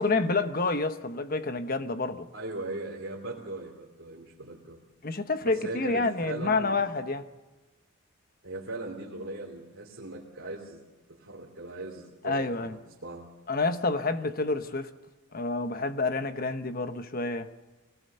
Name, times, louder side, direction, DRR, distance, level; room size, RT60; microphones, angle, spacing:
voice 1, 0.0-2.3 5.0-7.2 12.2-12.8 13.5-14.9 15.3-17.5, left 3 dB, 40° left, 1.1 m, -28 dB
voice 2, 2.3-4.8 5.4-6.9 8.4-10.8 11.1-12.7 13.0-13.3, right 2 dB, 60° right, 3.0 m, -39 dB
23.5 x 18.5 x 6.8 m
head